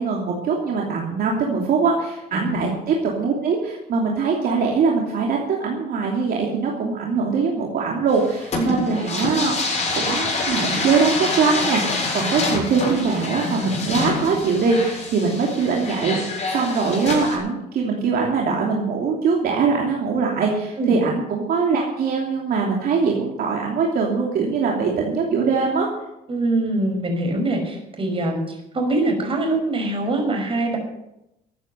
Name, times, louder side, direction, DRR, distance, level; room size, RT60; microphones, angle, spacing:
voice 1, 0.0-9.6 9.9-25.9, right 5 dB, 60° right, -1 dB, 3.0 m, -22 dB
voice 2, 2.3-2.6 8.5-8.8 20.8-21.0 26.3-30.8, right 2 dB, 30° right, 2 dB, 5.6 m, -23 dB
sound 1, 8.1-17.4, left 3 dB, 40° left, 7.3 m, -26 dB
14.0 x 9.0 x 7.9 m, 0.86 s
cardioid pair, 110°, 17 cm